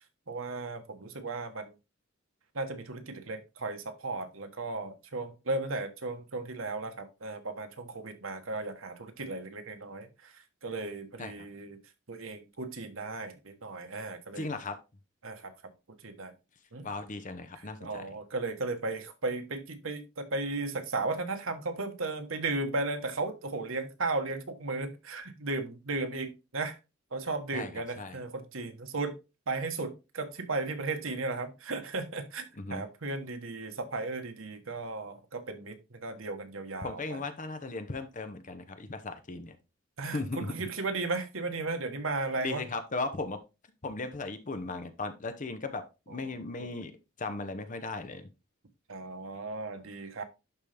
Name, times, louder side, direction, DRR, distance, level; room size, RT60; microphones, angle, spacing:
voice 1, 0.3-1.7 2.5-10.3 10.6-11.8 12.1-14.5 15.2-15.5 16.0-16.3 16.7-16.9 17.8-26.8 27.1-29.1 29.5-32.4 32.7-37.2 40.0-42.6 46.1-46.7 48.9-50.2, right 3 dB, 80° right, 1.3 m, -35 dB
voice 2, 14.3-14.8 16.8-18.1 27.5-27.7 28.0-28.2 32.6-32.8 36.8-39.6 40.1-40.5 42.4-43.4 43.8-46.9 47.2-48.3, left 3 dB, 40° left, 0.9 m, -37 dB
11.5 x 3.9 x 3.4 m
head